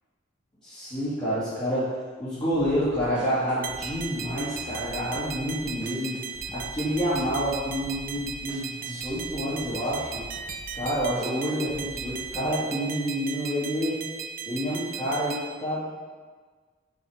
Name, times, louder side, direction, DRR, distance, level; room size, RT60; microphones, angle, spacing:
voice 1, 0.6-1.9 2.2-6.2 6.5-10.2 10.7-14.0 14.5-16.0, equal, 25° left, -14 dB, 2.1 m, -28 dB
sound 1, 2.5-12.4, equal, 5° right, 1.1 m, -46 dB
sound 2, 3.6-15.5, right 6 dB, 45° right, 0.4 m, -37 dB
6.4 x 4.7 x 4.9 m, 1.5 s
head